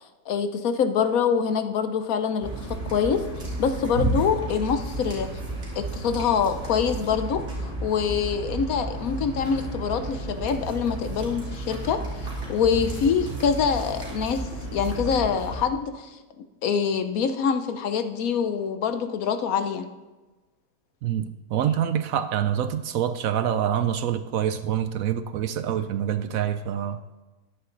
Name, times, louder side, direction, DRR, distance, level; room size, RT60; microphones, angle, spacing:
voice 1, 0.3-3.2 3.6-5.3 5.8-19.9, left 6 dB, 65° left, 1.1 m, -25 dB
sound 1, 2.4-15.6, right 2 dB, 45° right, 3.1 m, -32 dB
voice 2, 21.0-27.0, right 9 dB, 70° right, 0.9 m, -26 dB
13.5 x 10.5 x 3.9 m
omnidirectional pair, 1.7 m